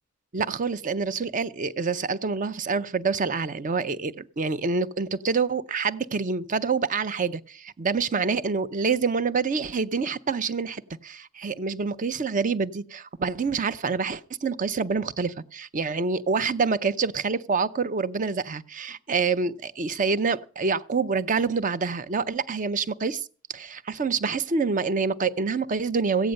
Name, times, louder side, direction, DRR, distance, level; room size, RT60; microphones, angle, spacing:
voice 1, 0.3-23.3 23.5-26.3, right 4 dB, 40° right, 0.6 m, -27 dB
15.0 x 9.1 x 6.4 m
head